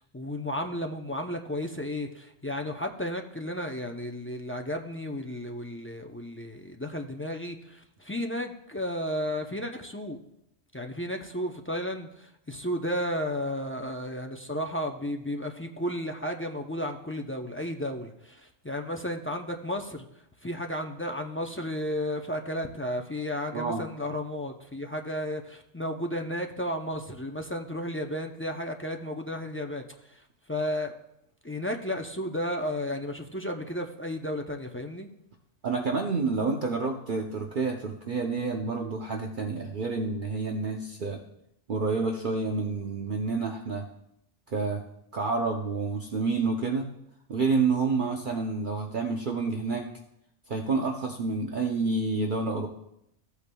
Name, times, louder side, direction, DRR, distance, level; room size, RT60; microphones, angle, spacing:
voice 1, 0.1-10.2 10.7-20.0 20.4-30.2 30.5-30.9 31.4-35.1, equal, 15° left, 3 dB, 0.4 m, -33 dB
voice 2, 23.5-23.8 35.6-41.2 41.7-43.8 44.5-44.8 45.1-46.9 47.3-49.8 50.5-52.7, right 4 dB, 50° right, 1 dB, 0.8 m, -29 dB
15.5 x 8.3 x 2.3 m, 0.79 s
omnidirectional pair, 1.2 m